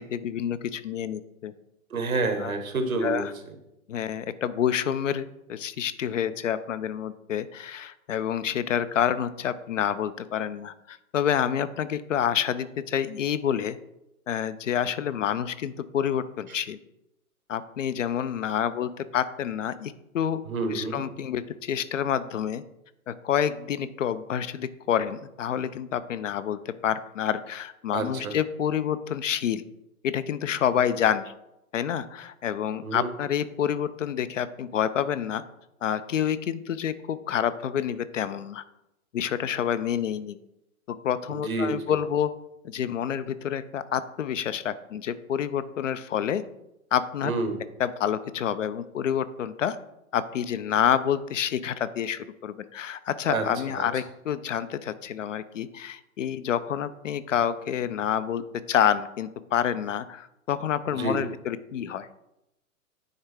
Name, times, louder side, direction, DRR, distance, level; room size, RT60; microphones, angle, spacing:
voice 1, 0.0-1.5 2.4-2.5 3.0-3.3 3.9-13.8 14.3-16.8 17.5-20.4 20.7-22.6 23.1-29.6 30.0-31.3 31.7-35.4 35.8-38.6 39.1-40.4 40.9-42.3 42.6-46.4 46.9-47.3 47.8-49.8 50.1-62.1, left 9 dB, 60° left, 14 dB, 0.5 m, -28 dB
voice 2, 1.9-3.3 20.4-21.0 27.9-28.3 32.8-33.1 41.3-41.7 47.2-47.6 53.3-53.5 53.7-53.9 60.9-61.2, right 3 dB, 70° right, 7 dB, 1.1 m, -28 dB
9.4 x 3.4 x 3.4 m, 0.87 s
figure-of-eight pair, 105°, 43 cm